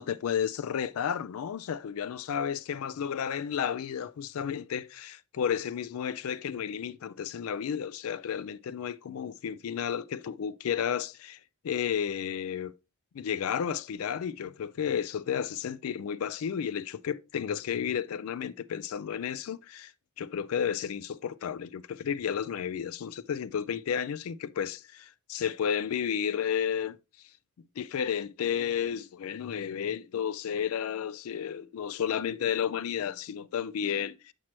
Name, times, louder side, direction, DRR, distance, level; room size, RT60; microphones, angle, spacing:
voice 1, 0.0-11.4 11.6-12.7 13.1-19.9 20.2-27.0 27.8-34.3, left 8 dB, 75° left, 0.4 m, -32 dB
7.3 x 4.5 x 2.9 m
head